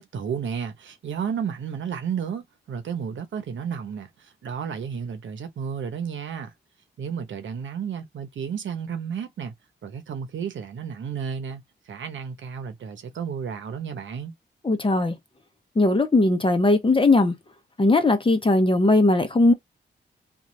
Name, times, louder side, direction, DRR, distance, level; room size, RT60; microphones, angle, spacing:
voice 1, 0.0-6.5 7.0-9.5 9.8-14.3, right 7 dB, 70° right, 0.9 m, -32 dB
voice 2, 14.6-15.2 15.8-17.3 17.8-19.5, left 2 dB, 25° left, 1.0 m, -19 dB
3.0 x 2.5 x 2.7 m
cardioid pair, 55°, 20 cm